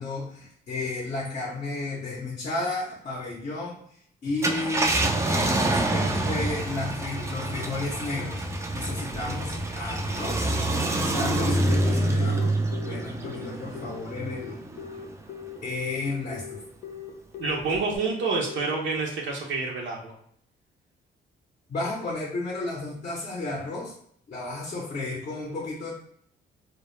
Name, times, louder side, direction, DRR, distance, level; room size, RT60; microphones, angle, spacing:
voice 1, 0.0-8.4 8.7-12.5 12.9-14.6 15.6-16.6 21.7-23.9 24.3-25.9, left 2 dB, 35° left, -2 dB, 0.6 m, -33 dB
Car, 4.3-15.1 15.6-15.7 17.7-18.0, right 1 dB, 15° right, 0.3 m, -27 dB
Telephone, 11.2-18.6, left 9 dB, 90° left, 0.5 m, -40 dB
voice 2, 17.4-20.2, right 4 dB, 70° right, -1 dB, 0.6 m, -28 dB
2.1 x 2.0 x 3.0 m, 0.64 s
cardioid pair, 90°, 20 cm